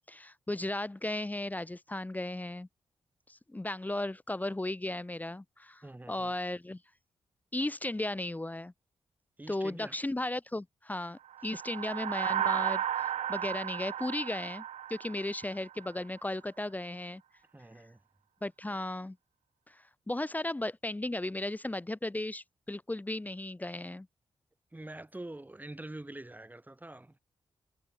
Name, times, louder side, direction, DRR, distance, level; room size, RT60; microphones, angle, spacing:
voice 1, 0.1-2.7 3.3-6.8 7.5-8.7 9.5-17.2 18.4-19.2 19.7-24.1, left 1 dB, 15° left, 0.8 m, -36 dB
voice 2, 5.8-6.3 9.4-10.0 17.5-18.0 24.7-27.2, right 1 dB, 15° right, 3.0 m, -45 dB
sound 1, 11.3-15.9, right 10 dB, 90° right, 0.8 m, -34 dB
cardioid pair, 65°, 11 cm